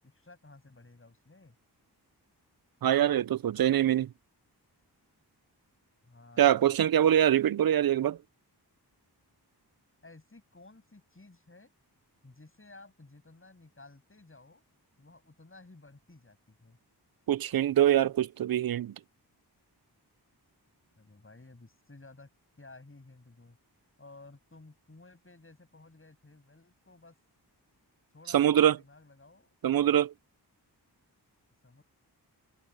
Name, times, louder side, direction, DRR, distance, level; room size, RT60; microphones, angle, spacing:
voice 1, 0.0-1.6 6.0-6.8 10.0-11.7 12.2-14.6 15.0-16.8 20.9-22.3 22.6-23.6 24.0-27.2 28.1-29.5 31.6-31.8, left 2 dB, 30° left, 7.9 m, -54 dB
voice 2, 2.8-4.1 6.4-8.2 17.3-18.9 28.3-28.8 29.6-30.1, right 11 dB, 60° right, 0.5 m, -24 dB
wide cardioid pair, 95°, 41 cm